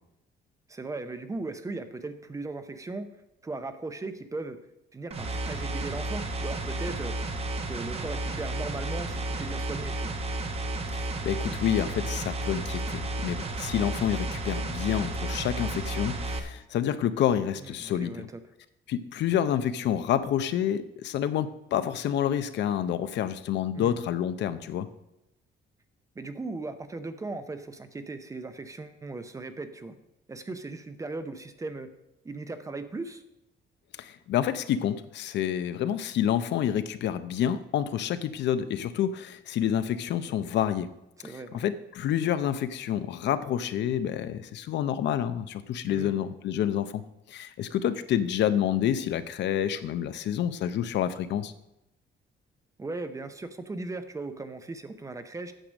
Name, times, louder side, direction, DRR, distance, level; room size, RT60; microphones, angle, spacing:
voice 1, 0.7-3.2 3.4-4.6 4.9-7.2 7.7-10.2 17.6-18.4 23.7-23.9 26.2-30.0 30.3-31.9 32.2-33.2 41.2-41.6 45.9-46.2 52.8-55.5, right 3 dB, 15° right, 10 dB, 0.6 m, -38 dB
sound 1, 5.1-16.4, right 2 dB, 35° right, 0.9 m, -32 dB
voice 2, 10.9-18.3 18.9-24.9 34.0-40.9 41.2-47.0 47.3-51.5, left 10 dB, 75° left, 12 dB, 0.6 m, -28 dB
8.9 x 6.6 x 6.3 m, 0.90 s
cardioid pair, 160°, 18 cm